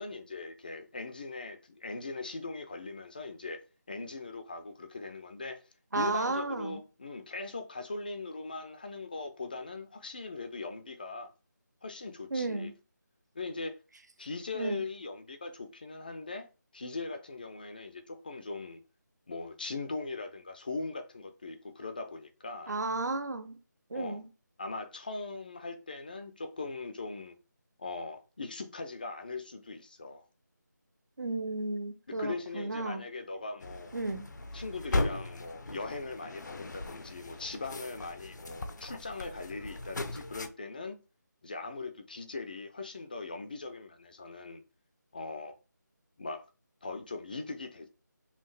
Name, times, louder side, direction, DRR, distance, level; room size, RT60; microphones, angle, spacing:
voice 1, 0.0-3.6 3.9-5.6 5.9-11.3 11.8-12.7 13.3-13.8 14.2-16.5 16.7-18.8 19.3-22.7 23.9-24.2 24.6-27.4 27.8-30.3 32.1-33.9 34.5-41.0 41.4-44.6 45.1-45.5 46.2-46.4 46.8-47.9, left 3 dB, 30° left, 0.5 m, -40 dB
voice 2, 5.9-6.8 12.3-12.7 14.5-14.8 22.7-23.6 23.9-24.2 31.2-33.0 33.9-34.3, right 2 dB, 65° right, 1.0 m, -33 dB
sound 1, 33.6-40.5, left 2 dB, 70° left, 0.7 m, -37 dB
5.5 x 2.5 x 3.2 m
figure-of-eight pair, 170°, 10 cm